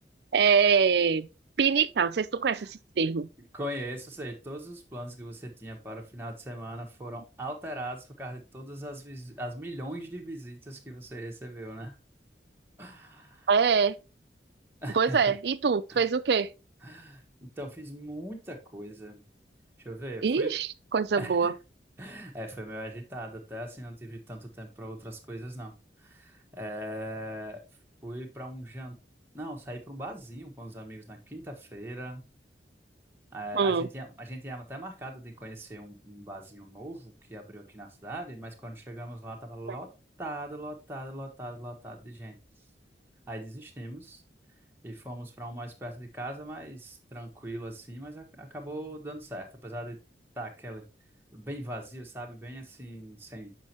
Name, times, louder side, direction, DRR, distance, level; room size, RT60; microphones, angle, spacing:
voice 1, 0.3-1.3 1.6-3.3 13.5-13.9 14.9-16.5 20.2-21.5 33.5-33.9, right 6 dB, 65° right, 0.4 m, -24 dB
voice 2, 3.5-12.0 12.8-13.5 14.8-15.3 15.9-16.1 16.8-19.2 19.8-20.6 21.2-21.5 22.0-25.7 26.0-27.6 28.0-29.0 29.3-32.2 33.3-39.9 40.2-42.4 43.3-44.2 44.8-50.0 50.4-50.8 51.3-53.6, right 1 dB, 10° right, 1.2 m, -40 dB
7.5 x 5.3 x 2.9 m
head